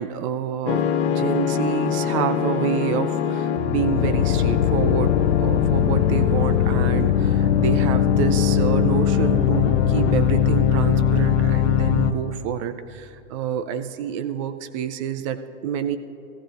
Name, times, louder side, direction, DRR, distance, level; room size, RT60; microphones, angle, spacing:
voice 1, 0.0-16.0, right 9 dB, 25° right, 9 dB, 0.5 m, -28 dB
sound 1, 0.7-12.1, left 9 dB, 50° left, 0.8 m, -20 dB
19.0 x 15.0 x 2.5 m, 2.6 s
hypercardioid pair, 125°, 41 cm